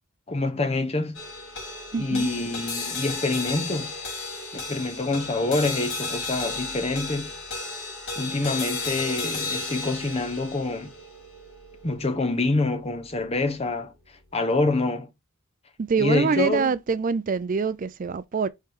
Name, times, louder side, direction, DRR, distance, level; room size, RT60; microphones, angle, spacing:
voice 1, 0.3-1.2 2.0-3.9 4.5-7.3 8.2-10.9 11.8-13.9 14.3-15.1 16.0-16.8, left 2 dB, 30° left, 1.0 m, -26 dB
sound 1, 1.1-13.6, left 3 dB, 55° left, 3.0 m, -34 dB
voice 2, 1.9-2.3 15.9-18.5, right 5 dB, 40° right, 0.4 m, -25 dB
5.4 x 4.8 x 3.6 m
head